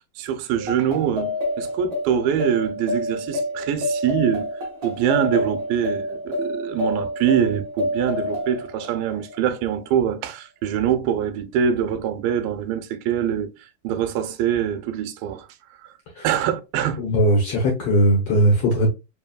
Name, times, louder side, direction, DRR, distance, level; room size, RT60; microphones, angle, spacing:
voice 1, 0.2-4.5 4.8-13.5 13.8-15.5 15.8-15.9 16.2-17.0, right 9 dB, 85° right, 2.3 m, -24 dB
sound 1, 0.6-9.6, left 1 dB, 50° right, 1.4 m, -28 dB
voice 2, 17.0-18.9, right 1 dB, 60° left, 1.7 m, -19 dB
5.2 x 2.8 x 2.3 m
omnidirectional pair, 4.0 m